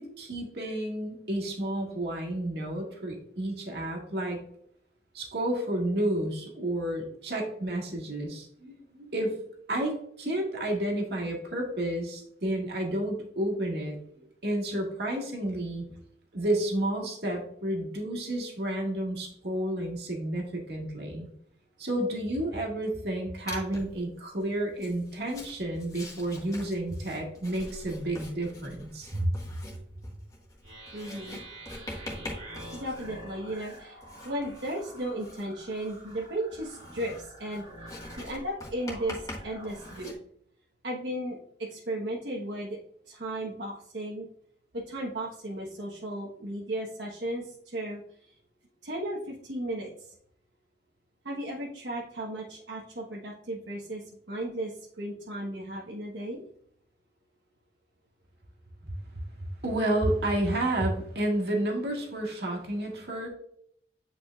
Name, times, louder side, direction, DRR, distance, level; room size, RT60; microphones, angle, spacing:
voice 1, 0.0-4.4 5.1-9.4 9.7-14.0 14.4-15.9 16.3-21.3 21.8-29.3 59.4-63.3, right 1 dB, 65° right, 0 dB, 1.8 m, -31 dB
Writing, 23.5-24.0 24.7-40.1, left 1 dB, 20° left, 1.5 m, -44 dB
sound 1, 30.6-40.1, right 1 dB, 35° right, 2.5 m, -48 dB
voice 2, 30.9-31.4 32.7-34.0 34.2-37.7 38.2-40.1 40.8-42.8 43.1-44.3 44.7-48.0 48.8-49.9 51.2-56.4, right 1 dB, 80° right, -4 dB, 1.2 m, -35 dB
9.0 x 4.9 x 2.4 m, 0.66 s
head